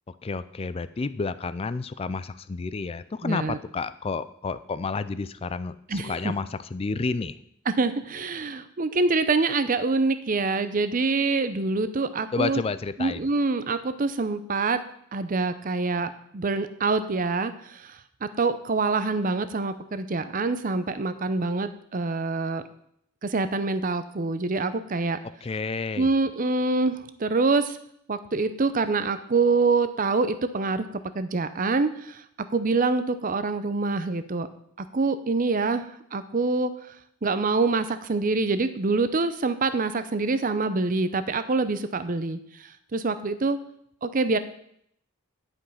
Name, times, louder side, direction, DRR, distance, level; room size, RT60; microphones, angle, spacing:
voice 1, 0.1-7.4 12.3-13.2 25.4-26.1, left 4 dB, 25° left, 14 dB, 0.4 m, -30 dB
voice 2, 3.2-3.6 5.9-6.3 7.7-12.6 13.0-14.8 15.1-22.6 23.2-25.2 26.0-27.8 28.1-30.9 31.1-32.2 32.5-34.5 34.8-36.7 37.2-43.6 44.0-44.4, right 3 dB, 40° right, 11 dB, 0.6 m, -25 dB
11.0 x 5.3 x 5.7 m, 0.70 s
head